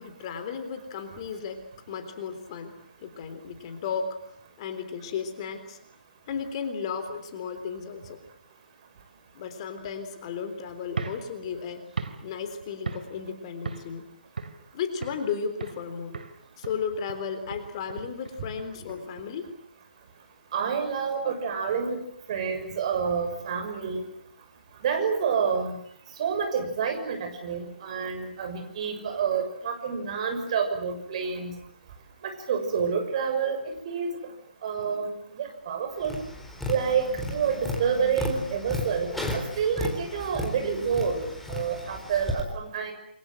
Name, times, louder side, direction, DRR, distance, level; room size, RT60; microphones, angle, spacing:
voice 1, 0.0-2.8 3.0-4.2 4.6-5.8 6.3-8.2 9.3-11.8 12.2-14.1 14.7-16.2 16.6-19.5 21.2-21.3, left 6 dB, 35° left, 8 dB, 3.7 m, -34 dB
sound 1, 10.9-13.3 13.7-14.0 14.4-15.3 15.6-15.9 16.1-19.3, right 4 dB, 60° right, 3.3 m, -38 dB
voice 2, 20.5-22.0 22.3-24.0 24.8-25.8 26.2-31.5 32.2-34.1 34.6-36.2 36.7-41.2 41.5-42.9, right 6 dB, 40° right, 6 dB, 6.3 m, -28 dB
Tap, 36.0-42.4, left 1 dB, 5° left, 4.1 m, -34 dB
28.5 x 23.5 x 7.8 m, 0.68 s
figure-of-eight pair, 140°, 5 cm